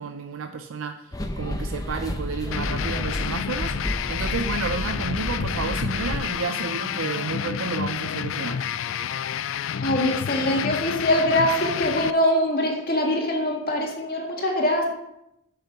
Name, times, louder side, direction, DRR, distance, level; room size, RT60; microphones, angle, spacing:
voice 1, 0.0-8.6, right 5 dB, 75° right, 7 dB, 0.5 m, -31 dB
sound 1, 1.1-6.2, left 1 dB, 20° left, 0.8 m, -31 dB
sound 2, 2.5-12.1, left 8 dB, 70° left, 0.4 m, -29 dB
voice 2, 9.8-14.9, left 1 dB, 45° left, 0 dB, 1.9 m, -23 dB
8.0 x 6.8 x 5.7 m, 0.84 s
head